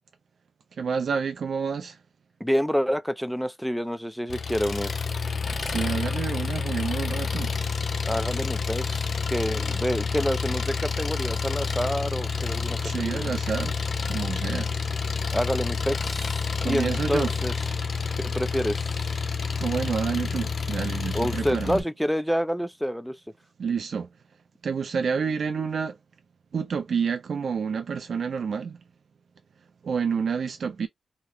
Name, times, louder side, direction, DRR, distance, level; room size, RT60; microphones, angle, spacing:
voice 1, 0.7-2.0 5.6-7.6 12.8-14.8 16.6-17.3 19.6-21.8 23.6-24.1 24.6-26.0 26.5-28.8 29.8-30.9, right 6 dB, 70° right, 0.4 m, -29 dB
voice 2, 2.4-5.0 8.0-13.3 15.3-17.5 18.2-19.2 21.1-23.2, equal, ahead, 0.4 m, -28 dB
Engine, 4.3-21.8, left 5 dB, 60° left, 0.4 m, -29 dB
2.9 x 2.0 x 2.4 m
cardioid pair, 60°, 0 cm